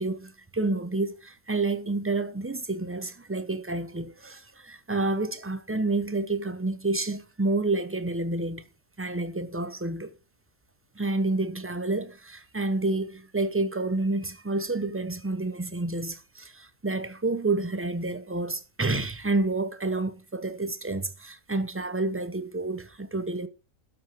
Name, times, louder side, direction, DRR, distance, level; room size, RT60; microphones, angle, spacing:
voice 1, 0.0-8.6 9.0-10.1 11.0-23.5, right 2 dB, 15° right, 0.5 m, -29 dB
12.5 x 6.0 x 4.5 m
omnidirectional pair, 1.4 m